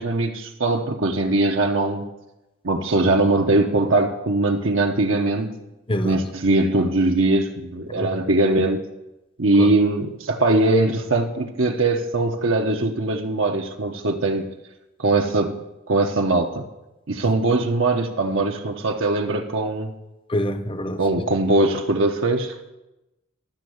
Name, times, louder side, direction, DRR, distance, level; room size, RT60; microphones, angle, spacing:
voice 1, 0.0-2.1 2.6-5.5 6.0-8.8 9.4-14.5 15.0-15.6 15.9-16.6 17.1-19.9 21.0-22.5, right 2 dB, 70° right, 3 dB, 1.0 m, -21 dB
voice 2, 5.9-6.2 7.9-8.1 9.6-9.7 20.3-21.0, equal, 25° left, 10 dB, 0.8 m, -25 dB
12.0 x 6.4 x 7.9 m, 0.96 s
head